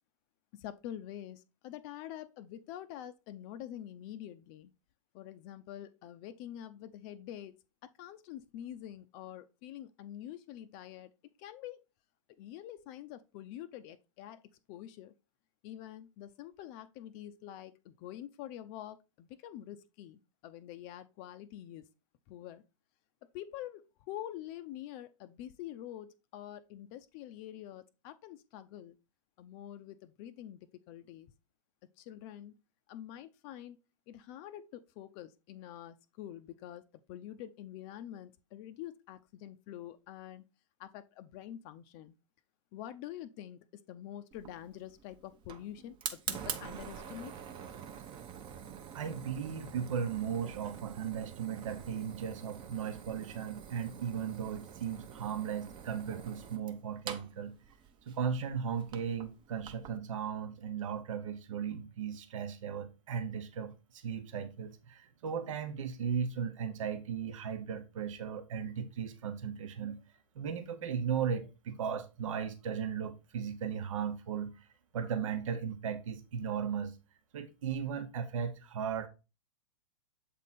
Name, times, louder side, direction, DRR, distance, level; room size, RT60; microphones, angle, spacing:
voice 1, 0.5-4.7 5.1-7.6 7.8-11.1 11.4-11.8 12.4-14.4 14.7-15.1 15.6-21.9 22.3-22.6 23.3-29.0 29.4-31.3 32.0-32.6 32.9-33.8 34.1-40.4 40.8-42.1 42.7-47.3, left 11 dB, 40° left, 0.5 m, -46 dB
Fire, 44.3-60.0, right 8 dB, 30° right, 0.8 m, -46 dB
voice 2, 48.9-57.5 58.1-70.0 70.3-74.7 74.9-77.0 77.3-79.1, right 7 dB, 70° right, 1.0 m, -36 dB
7.4 x 3.7 x 4.1 m
hypercardioid pair, 120°, 17 cm